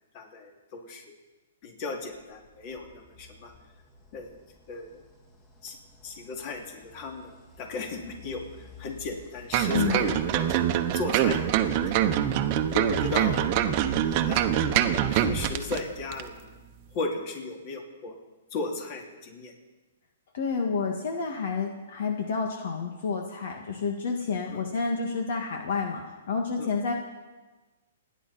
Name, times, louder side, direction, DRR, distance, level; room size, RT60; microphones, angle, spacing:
voice 1, 0.1-1.1 1.6-3.5 4.1-4.3 4.7-5.0 5.6-5.8 6.0-8.4 8.8-12.2 12.7-13.5 14.0-14.4 14.9-16.5 16.9-18.1 18.5-19.5 24.5-24.6 26.6-26.7, left 3 dB, 35° left, 2 dB, 2.7 m, -36 dB
sound 1, 2.1-16.6, left 3 dB, 20° left, 2.2 m, -44 dB
sound 2, 9.5-15.8 16.1-16.2, right 11 dB, 35° right, 1.0 m, -25 dB
voice 2, 9.7-10.2 20.3-26.0 26.3-26.9, left 5 dB, 60° left, 2 dB, 1.9 m, -29 dB
28.5 x 10.0 x 4.3 m, 1.2 s
hypercardioid pair, 150°, 0 cm